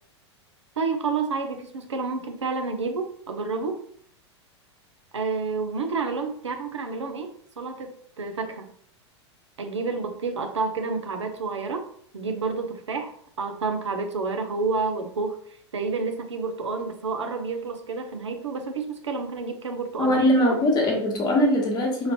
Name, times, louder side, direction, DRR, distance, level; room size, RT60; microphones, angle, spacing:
voice 1, 0.8-3.8 5.1-7.9 8.2-8.7 9.6-11.8 12.1-15.4 15.7-20.6, right 4 dB, 85° right, 6 dB, 0.5 m, -29 dB
voice 2, 20.0-22.1, left 1 dB, 25° left, 0 dB, 1.0 m, -21 dB
2.9 x 2.5 x 2.9 m, 0.62 s
figure-of-eight pair, 95°, 15 cm